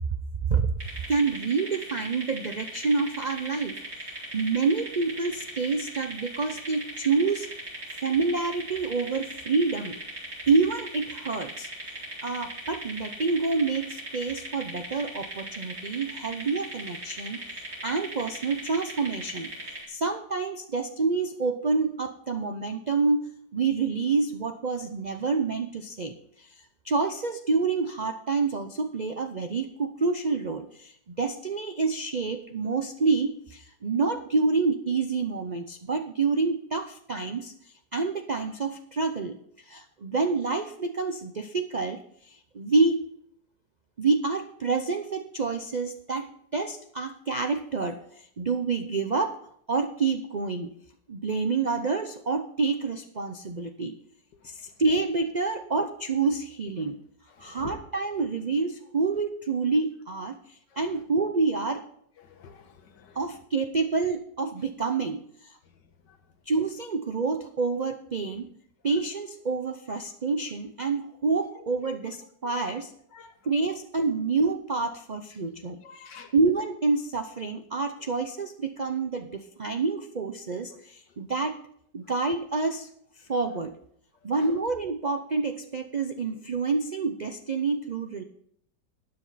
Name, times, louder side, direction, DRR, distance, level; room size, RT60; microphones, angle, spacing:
sound 1, 0.8-19.8, right 1 dB, 55° right, 4.8 m, -39 dB
voice 1, 1.1-3.8 4.0-7.5 8.0-10.0 10.5-11.7 12.2-19.5 19.9-26.5 26.8-37.5 37.9-39.4 39.7-42.0 42.2-43.1 44.0-46.3 46.5-49.4 49.7-50.7 51.1-53.9 54.4-57.0 57.4-60.4 60.8-61.8 63.2-65.6 66.5-68.5 68.8-72.9 73.4-75.8 76.3-81.6 81.9-82.9 83.3-83.7 84.2-88.2, right 4 dB, 75° right, 7 dB, 0.4 m, -28 dB
voice 2, 57.4-57.7 62.3-63.2 72.6-72.7 73.1-73.3 75.8-76.3, left 5 dB, 85° left, 7 dB, 1.9 m, -47 dB
13.0 x 9.7 x 4.1 m, 0.67 s
omnidirectional pair, 1.8 m